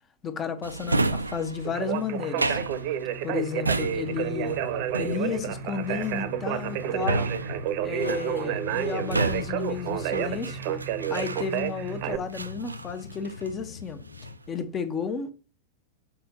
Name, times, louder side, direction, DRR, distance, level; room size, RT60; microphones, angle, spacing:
voice 1, 0.2-2.6 3.2-4.6 5.0-7.3 7.8-10.6 11.1-14.0 14.5-15.3, left 6 dB, 25° left, 1.0 m, -32 dB
Drawer open or close, 0.6-11.9 12.3-13.6 13.9-14.5, right 2 dB, 80° right, 0.4 m, -32 dB
Conversation, 1.6-12.2, right 10 dB, 45° right, 0.8 m, -30 dB
sound 1, 4.1-14.4, left 5 dB, 70° left, 0.5 m, -43 dB
6.9 x 4.3 x 4.0 m
figure-of-eight pair, 90°, 0 cm